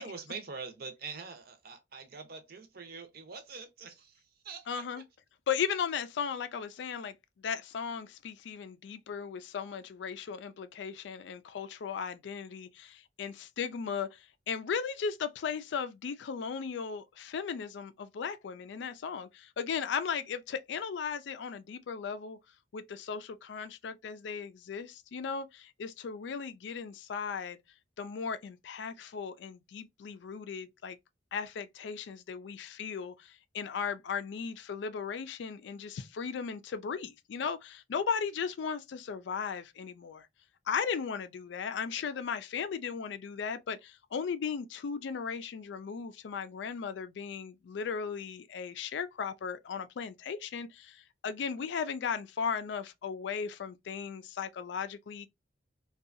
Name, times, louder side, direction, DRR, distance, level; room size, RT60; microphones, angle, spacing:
voice 1, 0.0-4.2 4.4-4.8, right 4 dB, 55° right, 0.7 m, -44 dB
voice 2, 4.7-5.0 5.5-22.4 22.7-27.6 28.0-31.0 31.3-40.3 40.7-55.3, left 6 dB, 70° left, 0.3 m, -36 dB
2.6 x 2.3 x 2.4 m
head